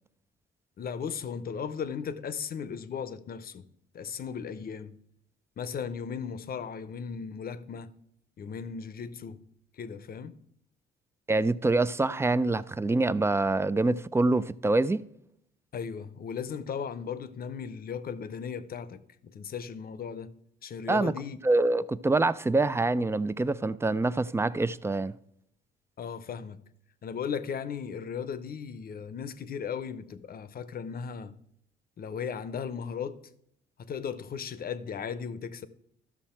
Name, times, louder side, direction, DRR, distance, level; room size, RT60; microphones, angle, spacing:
voice 1, 0.8-3.7 3.9-5.0 5.6-7.9 8.4-9.4 9.8-10.4 15.7-20.3 20.6-21.4 26.0-26.6 27.0-31.3 32.0-33.2 33.8-35.7, left 7 dB, 50° left, 0.7 m, -36 dB
voice 2, 11.3-15.0 20.9-21.1 21.4-25.1, right 2 dB, 15° right, 0.3 m, -25 dB
13.0 x 6.2 x 4.4 m
cardioid pair, 90°, 20 cm